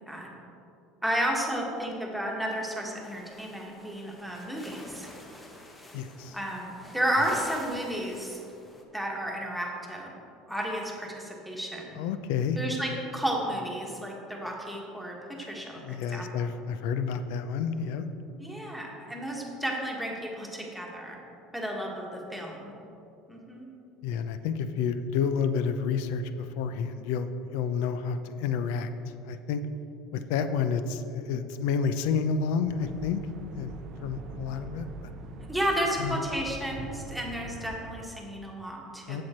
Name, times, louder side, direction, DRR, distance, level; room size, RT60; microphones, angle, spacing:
voice 1, 1.0-5.1 6.3-8.4 8.9-10.1 10.5-12.0 12.6-16.2 18.4-21.2 21.5-22.7 23.3-23.7 35.5-39.2, equal, ahead, -2 dB, 1.5 m, -32 dB
sound 1, 3.0-8.8, left 1 dB, 15° left, 1.0 m, -48 dB
voice 2, 5.9-6.4 11.9-12.6 15.4-15.5 15.8-18.1 24.0-28.9 29.3-29.6 30.1-33.2 33.5-33.7 34.0-35.1 36.0-36.2 39.1-39.2, left 6 dB, 80° left, 10 dB, 0.5 m, -30 dB
sound 2, 32.7-38.0, right 4 dB, 45° right, 0.5 m, -43 dB
7.7 x 7.6 x 4.4 m, 2.8 s
supercardioid pair, 130°, 0 cm